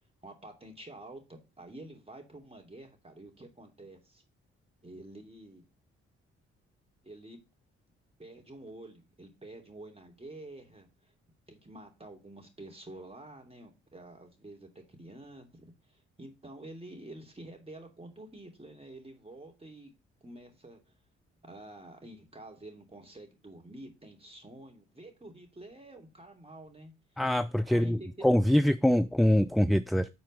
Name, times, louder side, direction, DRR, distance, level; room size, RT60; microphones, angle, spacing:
voice 1, 0.2-4.2 4.8-5.6 7.0-7.4 8.2-11.1 11.5-19.9 20.2-20.8 21.4-26.9 27.7-28.1, right 1 dB, 15° right, 2 dB, 3.1 m, -48 dB
voice 2, 27.2-30.1, equal, ahead, 10 dB, 0.3 m, -24 dB
8.6 x 4.3 x 5.4 m, 0.27 s
figure-of-eight pair, 40°, 34 cm